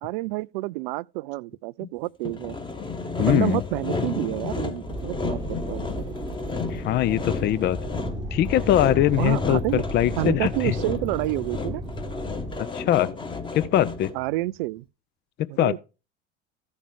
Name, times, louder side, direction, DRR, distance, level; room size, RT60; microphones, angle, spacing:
voice 1, 0.0-2.6 3.2-6.2 9.2-9.8 10.2-11.8 14.1-14.9 15.5-15.8, right 20 dB, 50° right, 0.4 m, -29 dB
Sawing, 2.3-14.3, left 4 dB, 15° left, 1.4 m, -33 dB
voice 2, 3.2-3.6 6.7-7.8 8.3-10.7 12.6-13.1 13.5-14.1 15.4-15.8, left 13 dB, 30° left, 0.6 m, -22 dB
sound 1, 4.8-12.6, right 1 dB, 10° right, 1.1 m, -34 dB
14.5 x 5.4 x 4.8 m
figure-of-eight pair, 80°, 35 cm